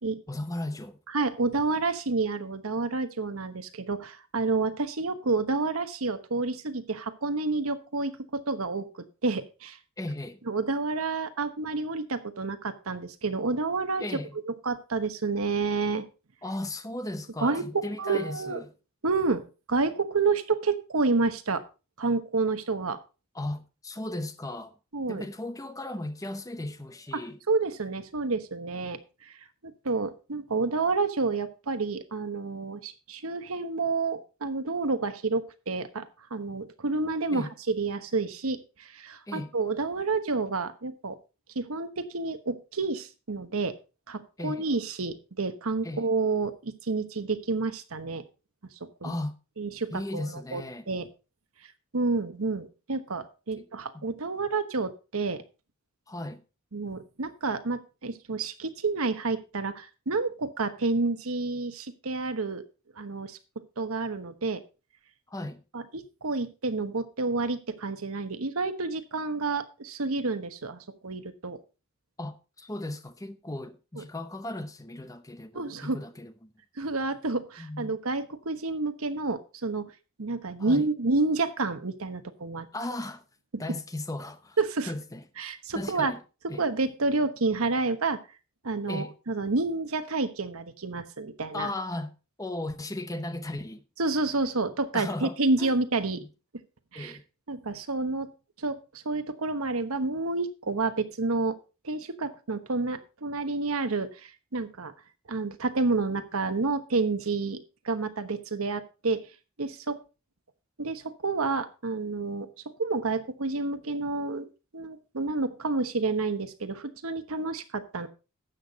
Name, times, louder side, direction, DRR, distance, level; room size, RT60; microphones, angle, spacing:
voice 1, 0.3-1.0 10.0-10.4 14.0-14.4 16.4-18.7 23.3-24.7 25.1-27.4 37.3-37.5 39.3-39.5 44.4-44.7 45.8-46.1 49.0-49.4 49.9-50.9 53.6-53.7 53.9-54.1 56.1-56.4 65.3-65.6 72.2-76.5 77.6-78.0 80.6-80.9 82.7-83.2 83.6-84.6 84.9-85.2 85.7-86.2 86.5-86.6 88.9-89.2 91.5-93.8 94.9-95.7 96.2-96.3 96.9-97.2, left 1 dB, 15° left, 0.8 m, -36 dB
voice 2, 1.1-8.9 9.2-9.8 10.5-14.0 14.6-16.1 17.4-17.6 18.0-18.6 19.0-21.6 22.0-23.0 24.9-25.2 27.1-27.2 27.5-29.3 29.6-41.2 41.5-43.8 44.1-48.2 49.0-49.1 49.6-51.1 51.9-55.4 56.7-62.6 63.0-63.4 63.8-64.6 65.7-71.6 74.0-74.1 75.5-76.0 76.8-79.9 80.2-82.7 84.6-84.9 85.4-86.1 86.6-88.2 88.6-91.7 94.0-96.2 96.9-97.1 97.5-98.3 98.6-101.6 101.8-104.9 105.3-107.6 107.8-109.2 109.6-110.0 110.8-112.5 112.8-114.5 114.7-118.1, right 3 dB, 80° right, 1.1 m, -29 dB
12.5 x 8.0 x 4.0 m
head